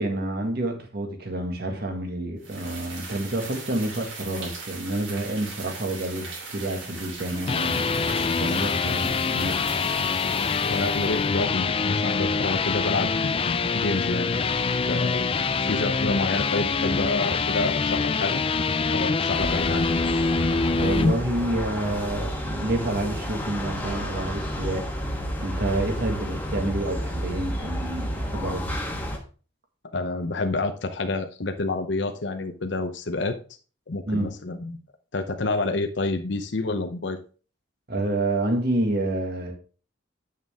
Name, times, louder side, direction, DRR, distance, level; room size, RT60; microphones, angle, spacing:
voice 1, 0.0-9.6 20.8-24.9 25.4-28.7 34.1-34.3 37.9-39.5, right 1 dB, 50° right, 4 dB, 1.8 m, -29 dB
sound 1, 2.4-11.4, right 4 dB, 75° right, 3.2 m, -39 dB
sound 2, 7.2-21.1, left 4 dB, 30° left, 0.4 m, -25 dB
voice 2, 10.6-14.3 14.9-15.3 15.7-18.4 18.9-19.9 29.9-33.4 33.9-34.8 35.1-37.2, left 3 dB, 60° left, 7 dB, 0.8 m, -28 dB
sound 3, 19.3-29.2, equal, 10° left, 1.3 m, -31 dB
8.9 x 6.5 x 3.6 m, 0.38 s
head